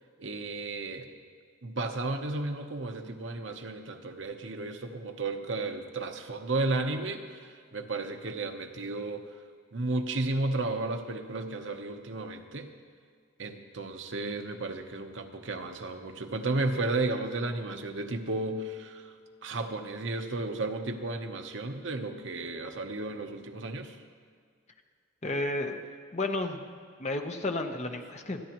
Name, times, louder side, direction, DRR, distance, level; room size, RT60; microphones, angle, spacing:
voice 1, 0.2-1.1 1.6-9.2 9.7-12.7 13.4-19.1 19.4-24.0, right 2 dB, 65° right, 5 dB, 1.0 m, -33 dB
voice 2, 25.2-25.8 26.1-26.6 27.0-28.4, left 2 dB, 35° left, 4 dB, 1.0 m, -32 dB
28.0 x 10.0 x 3.0 m, 2.1 s
head